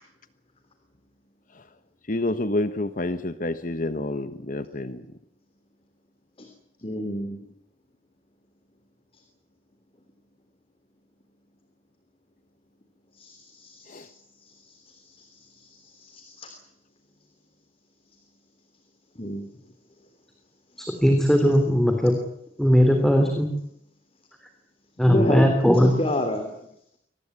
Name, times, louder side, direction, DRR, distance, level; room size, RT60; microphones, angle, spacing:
voice 1, 2.1-5.1 13.9-14.1 25.0-25.2, left 2 dB, 50° left, 11 dB, 1.3 m, -29 dB
voice 2, 6.8-7.4 13.1-14.1 14.4-16.6 19.1-19.4 25.1-26.6, left 1 dB, 35° left, 6 dB, 3.3 m, -30 dB
voice 3, 20.8-22.1 22.6-23.5 25.0-25.9, equal, ahead, 5 dB, 3.3 m, -19 dB
24.0 x 19.0 x 9.9 m, 0.75 s
head